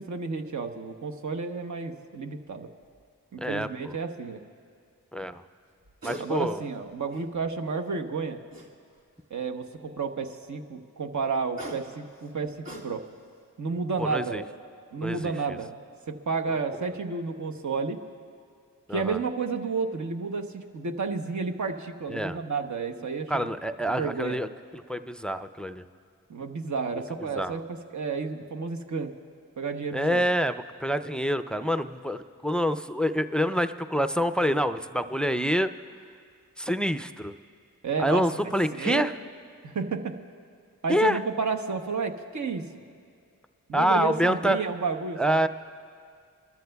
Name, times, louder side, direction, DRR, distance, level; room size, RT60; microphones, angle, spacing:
voice 1, 0.0-2.7 3.3-4.4 6.2-8.4 9.3-12.5 12.8-13.0 13.6-14.4 14.9-15.8 16.1-18.0 18.9-23.5 23.9-24.4 26.3-29.1 29.6-30.2 37.8-39.1 39.6-40.1 40.8-42.7 43.7-45.4, right 4 dB, 55° right, 4 dB, 1.0 m, -31 dB
sound 1, 2.8-3.0 5.7-6.3 6.7-7.5 8.5-9.2 11.3-13.3 13.7-14.0, equal, 70° right, 1.7 m, -42 dB
voice 2, 3.4-4.0 5.1-5.4 6.0-6.6 14.0-14.4 15.0-15.6 18.9-19.2 22.1-22.4 23.0-24.5 24.7-25.9 27.3-27.6 29.9-35.7 36.6-37.3 38.0-39.1 40.9-41.2 43.7-44.6 45.2-45.5, equal, 5° left, 10 dB, 0.5 m, -27 dB
29.5 x 13.5 x 2.3 m, 2.2 s
cardioid pair, 40°, 35 cm